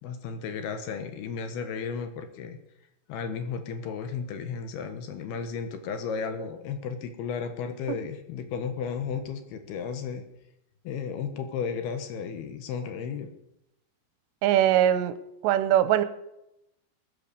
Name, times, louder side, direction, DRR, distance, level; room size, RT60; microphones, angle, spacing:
voice 1, 0.0-2.6 3.1-10.2 10.8-13.3, left 6 dB, 70° left, 8 dB, 3.0 m, -34 dB
voice 2, 14.4-15.1 15.4-16.0, right 11 dB, 90° right, 13 dB, 3.0 m, -21 dB
21.0 x 8.4 x 6.8 m, 0.86 s
omnidirectional pair, 5.0 m